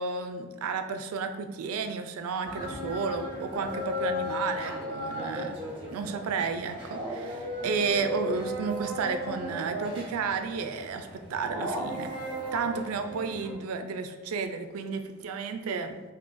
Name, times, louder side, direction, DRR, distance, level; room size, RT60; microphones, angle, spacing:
voice 1, 0.0-5.6 5.9-12.2 12.5-16.0, right 5 dB, 90° right, 8 dB, 0.3 m, -32 dB
sound 1, 2.4-13.5, left 1 dB, 25° right, 0.8 m, -36 dB
2.7 x 2.5 x 3.7 m, 1.2 s
head